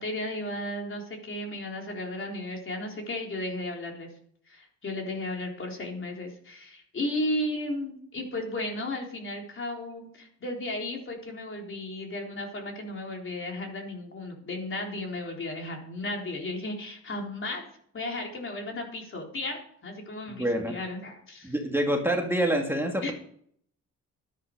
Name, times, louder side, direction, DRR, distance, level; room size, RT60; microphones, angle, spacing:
voice 1, 0.0-4.1 4.5-17.7 17.9-21.5 23.0-23.1, left 1 dB, 45° left, 1 dB, 4.0 m, -34 dB
voice 2, 20.4-20.8 21.4-23.1, right 1 dB, 10° right, 1 dB, 2.0 m, -26 dB
12.5 x 11.0 x 4.8 m, 0.64 s
cardioid pair, 90°, 30 cm